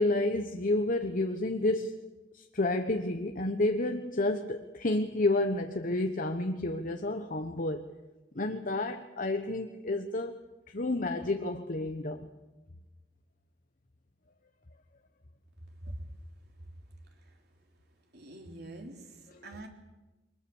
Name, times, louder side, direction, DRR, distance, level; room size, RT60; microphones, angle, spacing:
voice 1, 0.0-2.0 2.3-7.9 8.3-10.4 10.7-12.3 19.3-19.5, left 2 dB, 45° left, 6 dB, 1.1 m, -30 dB
voice 2, 18.1-19.7, right 1 dB, 55° right, 2 dB, 3.6 m, -45 dB
24.0 x 20.5 x 7.1 m, 1.1 s
head